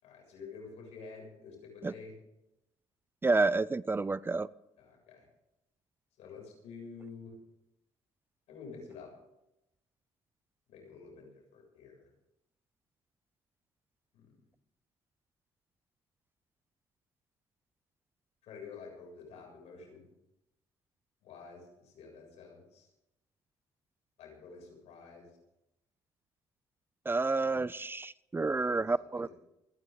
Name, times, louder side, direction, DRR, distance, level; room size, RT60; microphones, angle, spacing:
voice 1, 0.0-2.2 4.8-5.2 6.2-7.3 8.5-9.1 10.7-12.1 14.1-14.3 18.4-20.1 21.2-22.9 24.2-25.3 28.6-28.8 29.1-29.3, left 5 dB, 75° left, 1 dB, 7.3 m, -49 dB
voice 2, 3.2-4.5 27.1-29.3, right 3 dB, 20° right, 19 dB, 0.5 m, -29 dB
28.0 x 11.0 x 4.0 m, 0.87 s
cardioid pair, 85°, 11 cm